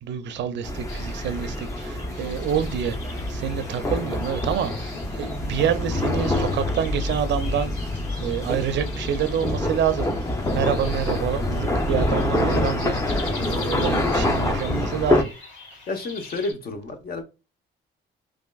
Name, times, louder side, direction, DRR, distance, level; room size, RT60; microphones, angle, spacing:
voice 1, 0.0-7.7 8.2-15.3, right 8 dB, 65° right, 0.5 m, -27 dB
sound 1, 0.6-15.2, left 1 dB, 15° left, 0.7 m, -26 dB
sound 2, 0.9-16.5, left 3 dB, 75° left, 1.7 m, -43 dB
voice 2, 15.9-17.2, left 3 dB, 50° left, 0.9 m, -30 dB
3.4 x 2.5 x 2.3 m
cardioid pair, 90°, 20 cm